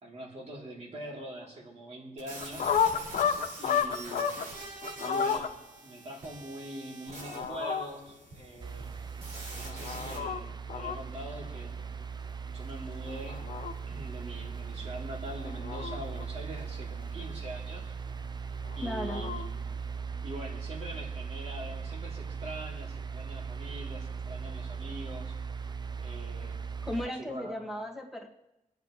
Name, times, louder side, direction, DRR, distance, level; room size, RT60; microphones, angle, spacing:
voice 1, 0.0-2.8 3.6-4.3 5.0-5.5 5.8-8.9 9.5-11.8 12.4-13.5 13.9-17.9 18.7-19.4 20.2-25.3 26.0-26.6 27.0-27.6, right 1 dB, 50° right, -2 dB, 3.4 m, -43 dB
sound 1, 2.2-10.2, right 2 dB, 90° right, 5.9 m, -45 dB
sound 2, 2.4-4.5 4.8-5.5 7.1-7.9 9.5-10.4 10.7-11.0 13.1-13.7 15.3-16.3 18.7-19.5, left 7 dB, 85° left, 1.0 m, -31 dB
sound 3, 8.6-27.1, right 6 dB, 30° right, 0.6 m, -39 dB
voice 2, 18.8-19.2 26.9-28.3, left 1 dB, ahead, 0 dB, 2.0 m, -36 dB
27.0 x 9.5 x 3.3 m, 0.96 s
wide cardioid pair, 105°, 14 cm